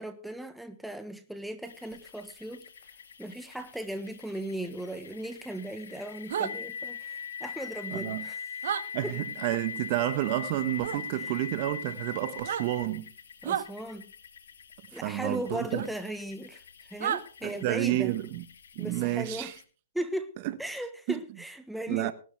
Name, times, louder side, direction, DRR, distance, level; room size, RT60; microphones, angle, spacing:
voice 1, 0.0-2.6 3.2-8.4 9.0-9.2 11.2-11.3 13.4-14.1 14.9-16.6 16.9-18.2 18.8-19.5 19.9-20.3 20.6-22.1, right 1 dB, ahead, 1.4 m, -37 dB
sound 1, 1.6-19.6, left 7 dB, 70° left, 2.2 m, -43 dB
sound 2, 6.3-6.5 8.6-8.8 10.8-11.0 12.3-12.7 13.4-13.7 15.7-15.9 17.0-17.2, right 9 dB, 60° right, 1.7 m, -30 dB
voice 2, 7.9-8.3 8.9-13.1 14.9-15.8 17.4-18.4 18.7-19.5 21.1-21.2 21.9-22.1, right 16 dB, 40° right, 1.2 m, -30 dB
19.0 x 12.0 x 3.5 m
hypercardioid pair, 140°, 0 cm